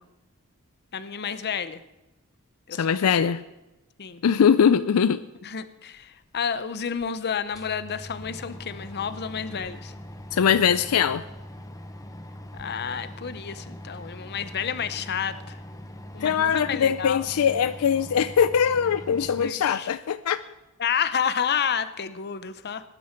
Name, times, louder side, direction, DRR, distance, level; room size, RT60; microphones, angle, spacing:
voice 1, 0.9-1.8 2.7-3.3 4.0-4.2 5.4-9.9 12.5-15.6 16.1-17.2 19.4-19.9 20.8-22.8, left 7 dB, 50° left, 12 dB, 0.7 m, -30 dB
voice 2, 2.7-3.4 4.2-5.2 10.3-11.2 16.2-20.4, left 7 dB, 75° left, 13 dB, 0.4 m, -21 dB
sound 1, 6.3-6.4 7.0-7.1 7.4-19.5, left 1 dB, 15° left, 0.9 m, -42 dB
18.5 x 11.0 x 4.5 m, 1.0 s
head